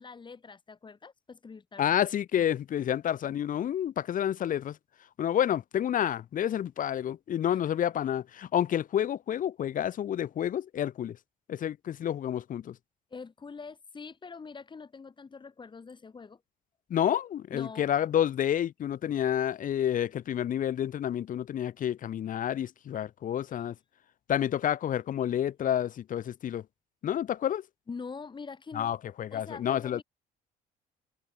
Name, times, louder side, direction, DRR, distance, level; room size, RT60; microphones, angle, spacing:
voice 1, 0.0-2.1 2.3-2.4 7.5-7.8 13.1-16.4 17.5-17.9 23.5-23.7 27.9-29.0 29.3-30.0, left 5 dB, 30° left, 7.0 m, -44 dB
voice 2, 1.8-4.8 5.2-11.2 11.5-12.7 16.9-23.8 24.3-26.6 27.0-27.6 28.8-30.0, left 10 dB, 50° left, 1.7 m, -29 dB
cardioid pair, 110°, 17 cm